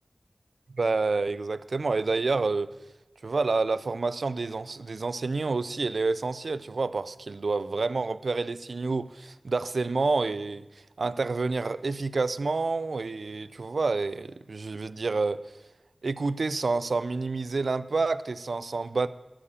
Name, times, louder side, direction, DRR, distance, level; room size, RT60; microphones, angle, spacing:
voice 1, 0.7-2.7 3.2-10.7 11.0-15.4 16.0-19.1, right 3 dB, 85° right, 0.4 m, -28 dB
11.0 x 7.1 x 8.4 m
wide cardioid pair, 65°, 0 cm